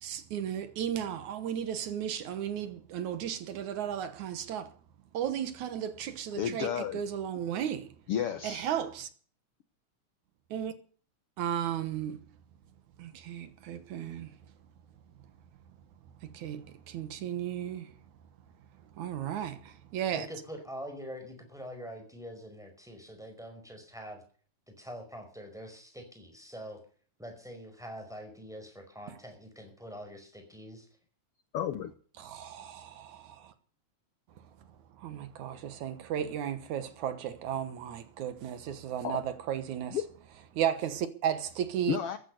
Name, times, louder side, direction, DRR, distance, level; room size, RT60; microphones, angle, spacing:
voice 1, 0.0-4.7 5.1-7.9 8.4-9.1 10.5-10.7 11.4-12.2 13.0-14.3 16.3-17.9 19.0-20.3 32.2-33.5 35.0-40.0 40.5-42.0, right 9 dB, 75° right, 2.6 m, -34 dB
voice 2, 6.4-7.0 8.1-8.7 31.5-31.9 39.0-39.2 39.9-40.0 41.9-42.2, left 9 dB, 65° left, 1.6 m, -31 dB
voice 3, 20.1-24.2 24.7-26.8 27.2-30.8, equal, ahead, 4.8 m, -44 dB
15.0 x 11.0 x 6.7 m
omnidirectional pair, 3.5 m